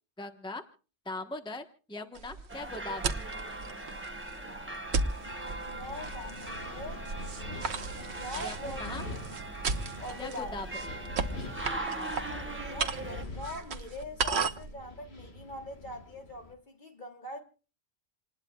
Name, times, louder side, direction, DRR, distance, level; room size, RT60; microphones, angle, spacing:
voice 1, 0.2-0.6 1.0-3.2 8.4-9.0 10.2-10.9 11.7-12.0, left 2 dB, 5° left, 1.1 m, -40 dB
sound 1, 2.1-14.7, right 4 dB, 75° right, 1.3 m, -36 dB
sound 2, 2.5-13.2, right 2 dB, 10° right, 1.3 m, -41 dB
Wind, 5.0-16.5, left 2 dB, 70° left, 2.0 m, -45 dB
voice 2, 5.2-7.0 7.9-9.0 10.0-10.6 11.4-11.9 12.6-17.4, left 1 dB, 45° left, 3.0 m, -43 dB
28.5 x 19.5 x 2.3 m
omnidirectional pair, 1.1 m